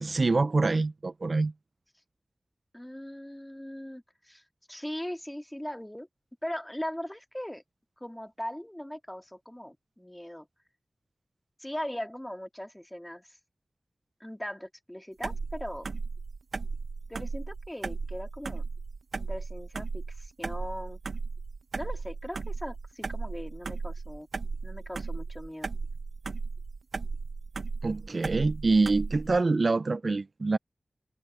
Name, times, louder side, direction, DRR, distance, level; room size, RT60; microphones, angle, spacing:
voice 1, 0.0-1.5 27.8-30.6, right 3 dB, 65° right, 0.4 m, -25 dB
voice 2, 2.7-4.4 4.7-6.1 6.4-7.6 8.0-10.5 11.6-13.4 14.2-16.0 17.1-18.7 19.2-21.0 21.7-24.3 24.6-25.7, equal, 10° left, 1.9 m, -39 dB
sound 1, 15.2-29.4, right 4 dB, 90° right, 1.0 m, -36 dB
cardioid pair, 45°, 0 cm